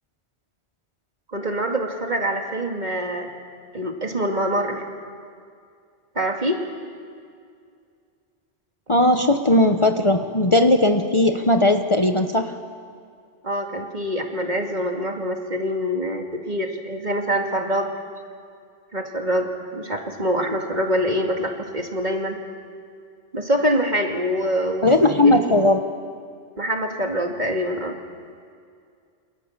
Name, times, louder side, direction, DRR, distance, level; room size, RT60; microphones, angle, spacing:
voice 1, 1.3-3.3 3.7-4.9 6.1-6.7 13.4-17.9 18.9-22.4 23.3-25.3 26.6-27.9, equal, 40° right, 2 dB, 2.6 m, -25 dB
voice 2, 8.9-12.5 20.5-20.6 24.8-25.8, left 1 dB, 30° left, 5 dB, 1.1 m, -18 dB
29.0 x 26.5 x 7.4 m, 2.3 s
omnidirectional pair, 1.1 m